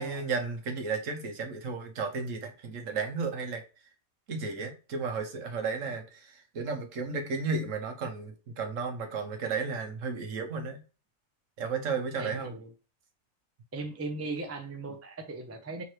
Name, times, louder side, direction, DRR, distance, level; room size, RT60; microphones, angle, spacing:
voice 1, 0.0-3.6 4.3-10.8 11.6-12.5, right 4 dB, 70° right, 5 dB, 1.2 m, -33 dB
voice 2, 12.2-12.7 13.7-15.8, right 3 dB, 20° right, 6 dB, 0.4 m, -38 dB
4.4 x 3.8 x 3.1 m, 0.33 s
omnidirectional pair, 1.4 m